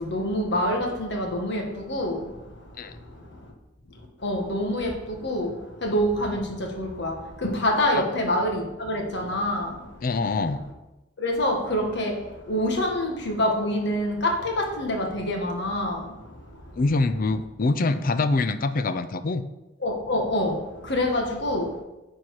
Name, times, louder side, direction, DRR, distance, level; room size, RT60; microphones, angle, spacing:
voice 1, 0.1-2.2 4.2-5.5 5.8-6.4 6.8-7.1 7.6-8.6 8.9-9.7 11.2-12.1 12.5-16.0 19.8-20.5 20.9-21.6, left 1 dB, 60° left, 2 dB, 1.6 m, -25 dB
voice 2, 10.0-10.7 16.7-19.4, left 3 dB, 45° left, 11 dB, 0.5 m, -24 dB
9.4 x 4.5 x 4.8 m, 1.0 s
head